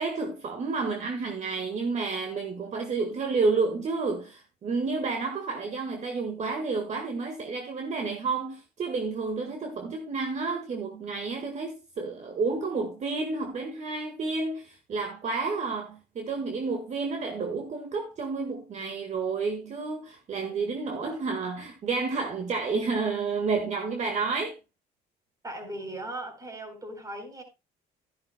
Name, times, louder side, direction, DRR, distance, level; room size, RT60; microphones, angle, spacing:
voice 1, 0.0-24.5, right 4 dB, 45° right, 1.7 m, -30 dB
voice 2, 25.4-27.4, right 1 dB, 20° right, 3.9 m, -38 dB
13.0 x 10.5 x 2.2 m
cardioid pair, 110°, 17 cm